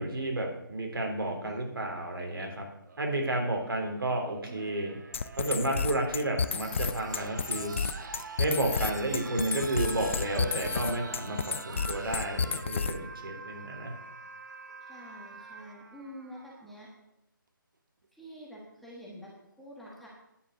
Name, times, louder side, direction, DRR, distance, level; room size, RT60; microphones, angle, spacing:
voice 1, 0.0-2.7 3.0-4.9 5.4-7.9 8.4-13.9, right 1 dB, 85° right, 2 dB, 3.6 m, -31 dB
voice 2, 1.3-1.6 14.8-16.9 18.1-19.3 19.6-20.1, equal, ahead, -5 dB, 1.3 m, -47 dB
sound 1, 2.8-16.8 18.0-18.1, right 4 dB, 60° right, 1.2 m, -45 dB
sound 2, 5.1-13.1, left 5 dB, 35° left, 0.4 m, -31 dB
9.8 x 7.8 x 6.5 m, 0.83 s
hypercardioid pair, 165°, 12 cm